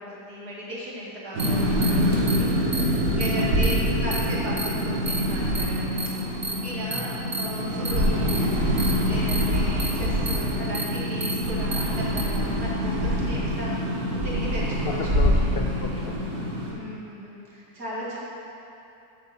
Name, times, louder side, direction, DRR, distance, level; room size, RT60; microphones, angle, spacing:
voice 1, 0.0-8.5 9.0-13.8 14.2-15.4 16.7-18.2, equal, 85° right, -7 dB, 2.7 m, -36 dB
sound 1, 1.3-16.7, equal, 65° right, 1.7 m, -25 dB
sound 2, 1.4-1.5 1.8-1.9 2.3-2.4 2.7-2.8 3.2-3.3 3.6-3.7 4.1-4.2 4.6-4.7 5.1-5.2 5.5-5.6 6.0-6.1 6.4-6.5 6.9-7.0 7.3-7.5 7.8-7.9 8.3-8.4 8.8-8.9 9.3-9.4 9.8-9.9 10.3-10.4 10.7-10.8 11.2-11.3 11.7-11.8 12.2-12.3, right 3 dB, 30° right, 0.8 m, -30 dB
voice 2, 6.9-7.2 14.9-16.6, left 4 dB, 80° left, 2 dB, 0.5 m, -34 dB
8.1 x 6.1 x 7.0 m, 2.8 s
omnidirectional pair, 1.7 m